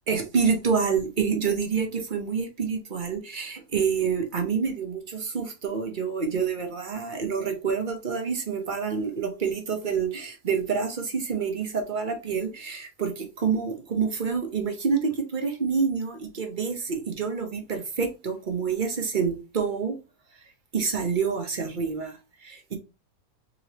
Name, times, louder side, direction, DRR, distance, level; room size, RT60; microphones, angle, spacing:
voice 1, 0.1-20.0 20.7-22.8, right 6 dB, 40° right, 0.8 m, -27 dB
4.0 x 3.1 x 2.9 m
omnidirectional pair, 1.5 m